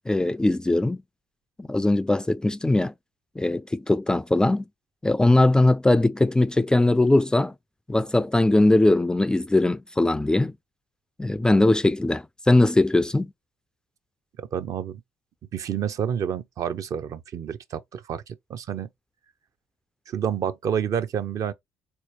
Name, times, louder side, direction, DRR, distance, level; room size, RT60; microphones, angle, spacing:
voice 1, 0.1-1.0 1.6-2.9 3.4-4.6 5.0-7.5 7.9-10.5 11.2-13.3, left 2 dB, 10° left, 0.3 m, -20 dB
voice 2, 14.4-15.0 15.5-18.9 20.1-21.5, right 8 dB, 50° right, 0.6 m, -29 dB
4.2 x 2.9 x 3.1 m
hypercardioid pair, 50°, 7 cm